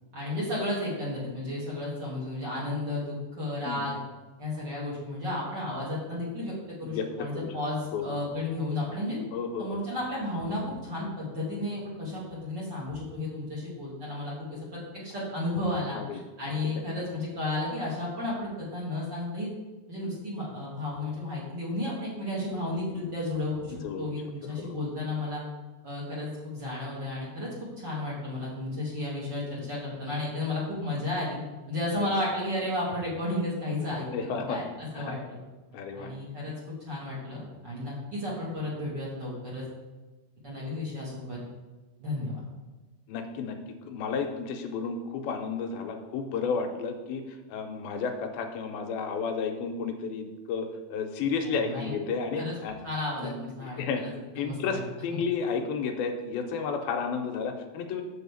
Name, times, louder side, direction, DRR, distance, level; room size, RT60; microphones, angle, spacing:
voice 1, 0.1-4.0 4.4-6.5 6.8-9.2 9.6-19.5 19.9-25.4 25.8-31.4 31.7-34.1 34.3-35.4 35.9-39.6 40.4-41.4 42.0-42.4 51.4-51.9 52.4-52.5 52.8-54.8 55.1-55.2, left 1 dB, 35° right, -6 dB, 2.3 m, -33 dB
voice 2, 6.8-7.5 7.9-8.0 9.3-9.8 15.9-16.2 16.8-16.9 23.8-24.1 24.4-24.7 32.0-32.1 34.1-34.6 35.0-35.1 35.7-36.1 43.1-43.6 43.8-47.2 47.5-52.7 53.2-53.3 53.6-54.1 54.4-58.0, left 5 dB, 90° left, 5 dB, 2.7 m, -32 dB
8.0 x 4.6 x 7.1 m, 1.2 s
omnidirectional pair, 4.2 m